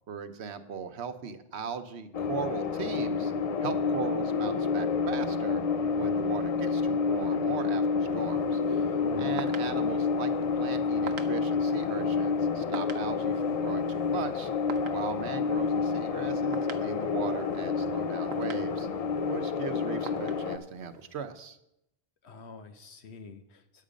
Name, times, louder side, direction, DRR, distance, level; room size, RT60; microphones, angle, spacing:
voice 1, 0.1-3.3 3.6-5.6 6.0-8.9 9.2-14.5 14.9-18.9 19.3-21.6, right 6 dB, 90° right, 9 dB, 1.1 m, -38 dB
sound 1, 2.1-20.6, left 5 dB, 45° left, 0.5 m, -29 dB
sound 2, 8.0-21.2, right 6 dB, 75° right, 1.0 m, -48 dB
voice 2, 9.0-9.5 22.2-23.8, left 4 dB, 85° left, 7 dB, 1.3 m, -46 dB
9.3 x 8.5 x 5.1 m, 0.82 s
omnidirectional pair, 1.1 m